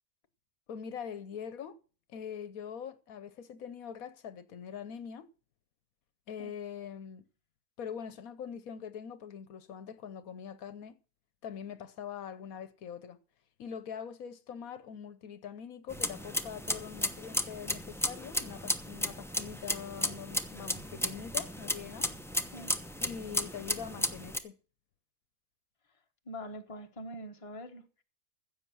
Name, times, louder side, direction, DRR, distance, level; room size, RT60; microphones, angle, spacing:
voice 1, 0.7-1.8 2.1-5.3 6.3-7.2 7.8-11.0 11.4-13.2 13.6-22.1 23.0-24.6, left 7 dB, 75° left, 1.3 m, -43 dB
sound 1, 15.9-24.4, left 1 dB, ahead, 0.7 m, -34 dB
voice 2, 26.2-27.9, equal, 25° left, 1.3 m, -44 dB
15.5 x 7.5 x 6.1 m
omnidirectional pair, 1.5 m